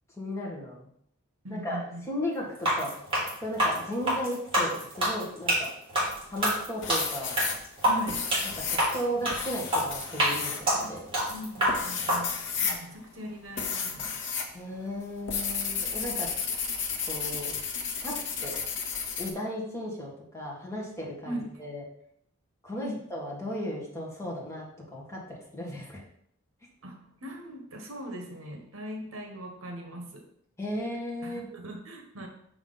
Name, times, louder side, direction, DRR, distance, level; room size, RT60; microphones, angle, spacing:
voice 1, 0.2-0.9 1.5-1.8 2.1-2.9 3.4-4.7 5.0-5.7 6.3-7.4 8.6-11.0 14.5-16.3 17.1-17.5 18.0-18.1 18.4-18.6 19.2-21.8 22.6-24.6 24.9-26.0 30.6-31.5, equal, 15° left, -4 dB, 1.7 m, -35 dB
voice 2, 1.4-2.1 7.8-8.3 10.8-10.9 11.3-14.2 21.2-21.5 22.8-23.0 26.8-30.3 31.2-32.3, equal, 65° right, 3 dB, 1.2 m, -40 dB
sound 1, 2.5-12.2, equal, 25° right, 2.8 m, -27 dB
sound 2, 6.1-6.5 6.8-14.5 14.8-19.3, left 6 dB, 60° left, 1.0 m, -33 dB
6.1 x 5.9 x 4.0 m, 0.70 s
head